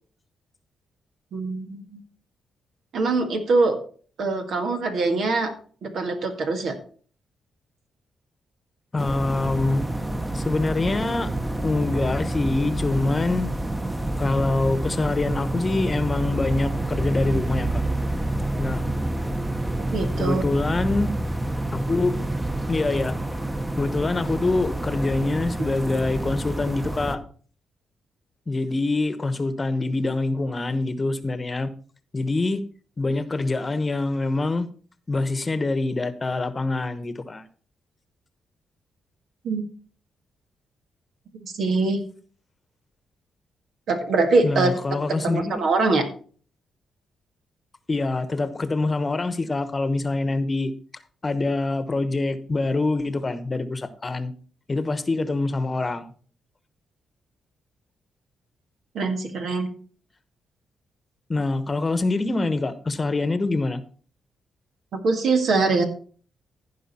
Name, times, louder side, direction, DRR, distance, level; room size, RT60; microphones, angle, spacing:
voice 1, 1.3-2.0 2.9-3.8 4.2-5.5 5.8-6.8 19.9-20.4 39.4-39.7 41.4-42.0 43.9-44.7 45.2-46.1 58.9-59.7 64.9-65.8, right 3 dB, 70° right, 5 dB, 1.9 m, -23 dB
voice 2, 8.9-9.8 10.3-11.3 11.6-13.5 14.2-17.8 18.6-18.8 20.2-21.1 21.7-22.1 22.7-23.2 23.7-27.2 28.5-31.7 32.1-32.6 33.0-34.7 35.1-37.5 44.4-45.6 47.9-50.7 51.2-54.3 54.7-56.1 61.3-63.8, left 3 dB, 35° left, 13 dB, 1.0 m, -25 dB
sound 1, 9.0-27.2, right 1 dB, 15° right, 1.0 m, -28 dB
15.0 x 5.1 x 4.3 m, 0.43 s
supercardioid pair, 60°, 0 cm